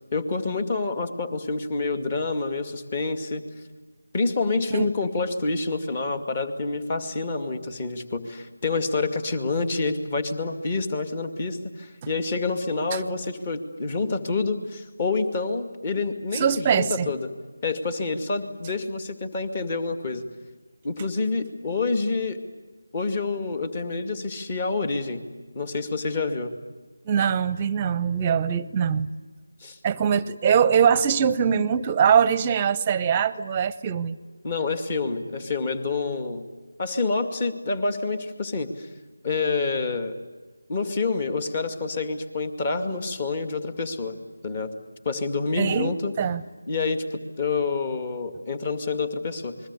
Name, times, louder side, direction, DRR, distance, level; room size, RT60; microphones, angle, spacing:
voice 1, 0.1-3.4 4.1-17.3 17.6-20.2 20.8-22.4 22.9-25.2 25.5-26.5 29.6-29.8 34.4-36.4 36.8-38.9 39.2-40.1 40.7-44.2 44.4-44.7 45.0-46.1 46.7-49.6, left 3 dB, 30° left, 9 dB, 2.3 m, -27 dB
voice 2, 16.3-17.1 27.1-29.1 29.8-34.2 45.6-46.4, right 7 dB, 20° right, 17 dB, 0.9 m, -22 dB
28.5 x 21.0 x 9.8 m, 1.3 s
figure-of-eight pair, 165°, 0 cm